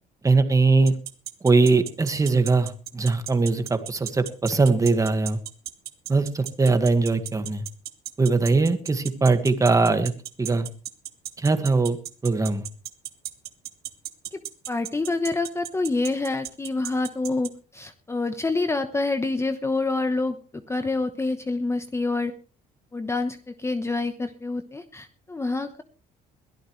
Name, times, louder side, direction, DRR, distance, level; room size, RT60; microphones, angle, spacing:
voice 1, 0.2-0.9 1.4-5.4 6.1-7.6 8.2-10.1 10.4-10.7 11.4-12.0 12.2-12.7, right 3 dB, 20° right, 9 dB, 1.9 m, -21 dB
sound 1, 0.9-17.5, right 12 dB, 70° right, 1.6 m, -34 dB
voice 2, 14.7-22.3 22.9-25.8, left 3 dB, 15° left, 9 dB, 1.1 m, -27 dB
22.0 x 13.0 x 3.3 m, 0.37 s
cardioid pair, 110°, 17 cm